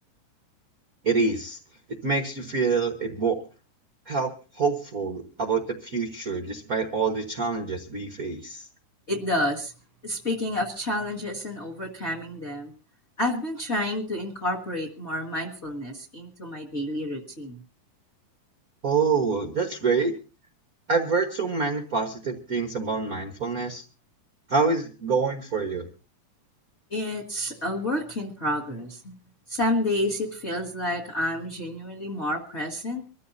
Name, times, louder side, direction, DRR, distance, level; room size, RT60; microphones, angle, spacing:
voice 1, 1.0-1.6 1.9-3.4 4.1-4.3 4.5-8.7 18.8-20.1 20.9-23.8 24.5-25.9, right 4 dB, 80° right, 5 dB, 0.8 m, -26 dB
voice 2, 9.1-9.7 10.0-12.7 13.2-17.6 26.9-29.1 29.5-33.0, left 1 dB, 35° left, 2 dB, 1.2 m, -29 dB
25.0 x 14.0 x 2.7 m, 0.33 s
omnidirectional pair, 3.8 m